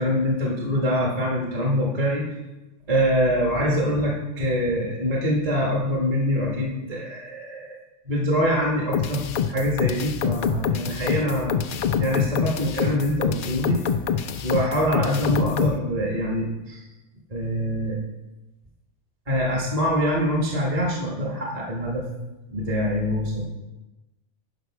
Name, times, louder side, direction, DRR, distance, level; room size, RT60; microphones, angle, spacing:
voice 1, 0.0-2.2 2.9-7.8 8.0-11.6 12.0-13.8 14.4-16.8 17.3-18.0 19.3-22.0 22.5-23.4, equal, 30° right, -2 dB, 1.3 m, -24 dB
sound 1, 8.9-15.8, left 8 dB, 80° left, 0.4 m, -26 dB
11.0 x 5.5 x 4.6 m, 1.0 s
omnidirectional pair, 1.4 m